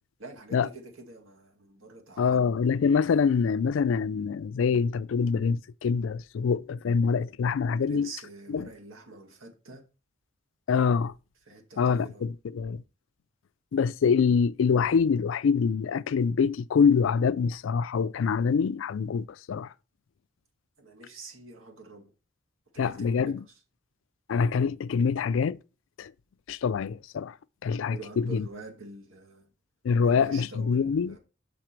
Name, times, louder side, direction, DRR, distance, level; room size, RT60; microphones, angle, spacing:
voice 1, 0.2-2.5 7.8-9.8 11.4-12.2 20.8-22.1 22.7-23.6 27.9-29.5 30.0-31.2, right 3 dB, 80° right, 1.9 m, -46 dB
voice 2, 2.2-8.1 8.5-8.7 10.7-11.1 11.8-12.8 13.7-19.7 22.8-23.4 24.3-25.6 26.0-26.1 26.5-27.4 27.6-28.4 29.8-31.2, left 6 dB, 70° left, 0.4 m, -25 dB
6.0 x 5.9 x 4.4 m
head